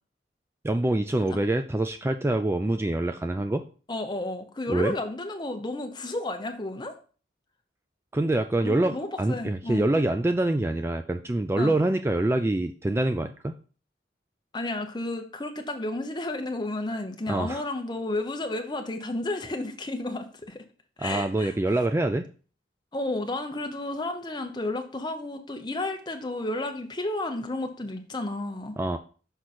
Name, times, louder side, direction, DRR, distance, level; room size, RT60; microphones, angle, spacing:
voice 1, 0.6-3.6 4.7-4.9 8.1-13.6 17.3-17.6 21.0-22.3 28.8-29.0, right 2 dB, 15° right, 8 dB, 0.3 m, -25 dB
voice 2, 3.9-6.9 8.6-9.9 11.6-11.8 14.5-20.6 21.0-21.5 22.9-28.8, left 2 dB, 25° left, 5 dB, 0.9 m, -32 dB
6.2 x 5.1 x 4.3 m, 0.39 s
head